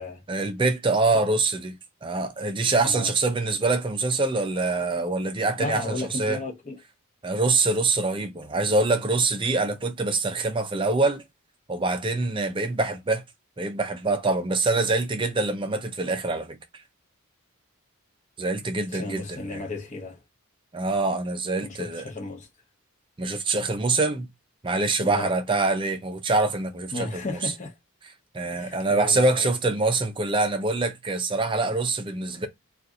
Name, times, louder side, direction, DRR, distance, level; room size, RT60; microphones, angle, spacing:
voice 1, 0.3-1.7 2.0-6.4 7.2-11.2 11.7-13.2 13.6-16.6 18.4-19.6 20.7-22.0 23.2-24.3 24.6-27.5 28.3-32.5, right 3 dB, 20° right, 0.5 m, -25 dB
voice 2, 5.6-6.8 18.9-20.2 21.6-22.5 25.0-25.3 26.9-27.7 28.5-29.5, left 2 dB, 35° left, 0.8 m, -34 dB
2.7 x 2.4 x 3.5 m
head